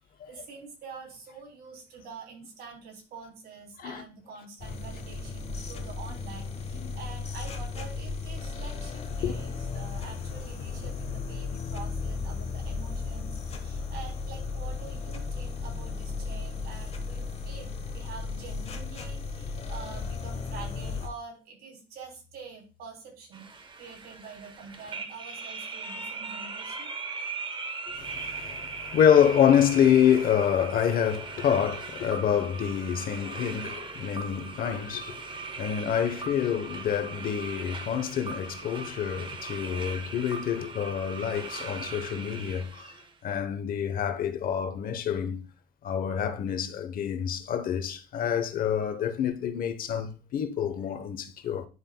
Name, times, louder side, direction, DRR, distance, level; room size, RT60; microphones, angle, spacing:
voice 1, 0.3-26.9, right 5 dB, 70° right, 3.2 m, -46 dB
sound 1, 4.6-21.1, left 4 dB, 40° left, 1.2 m, -35 dB
sound 2, 23.3-43.1, right 4 dB, 30° right, 0.9 m, -39 dB
voice 2, 27.9-42.9 43.2-45.4 45.8-51.7, left 9 dB, 60° left, 1.0 m, -27 dB
9.8 x 5.4 x 2.3 m
cardioid pair, 110°, 17 cm